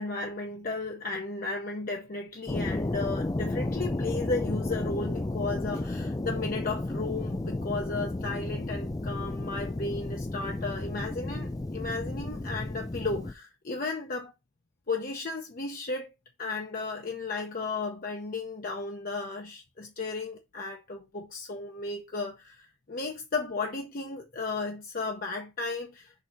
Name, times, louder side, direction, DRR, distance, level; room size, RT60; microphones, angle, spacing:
voice 1, 0.0-14.3 14.9-16.1 16.4-26.1, left 3 dB, 50° left, 0.8 m, -34 dB
sound 1, 2.5-13.3, left 2 dB, 20° left, 0.4 m, -32 dB
6.5 x 2.9 x 5.0 m
head